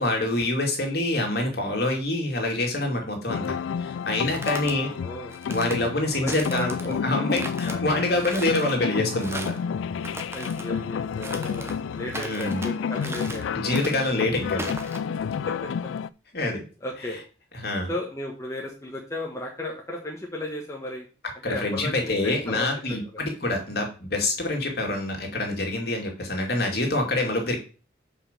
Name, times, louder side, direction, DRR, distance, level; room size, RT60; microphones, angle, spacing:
voice 1, 0.0-4.9 5.5-9.5 12.1-12.6 13.5-14.7 16.3-16.7 17.5-17.9 21.4-27.6, left 2 dB, 55° left, 2 dB, 2.3 m, -26 dB
sound 1, 3.3-16.1, left 6 dB, 85° left, 0.3 m, -30 dB
sound 2, 4.1-4.7 5.3-5.8 6.3-6.9 7.3-7.8 8.2-8.7 9.2-9.6 10.0-10.7 11.2-11.8 12.1-12.7 13.0-13.4 13.7-14.1 14.6-15.0, right 2 dB, 15° right, 1.0 m, -37 dB
voice 2, 4.8-5.3 6.1-7.3 7.6-7.8 10.3-13.5 15.4-15.7 16.8-17.2 17.9-21.0 21.5-23.0, left 1 dB, 15° left, -1 dB, 1.2 m, -35 dB
5.5 x 5.1 x 6.6 m, 0.35 s
head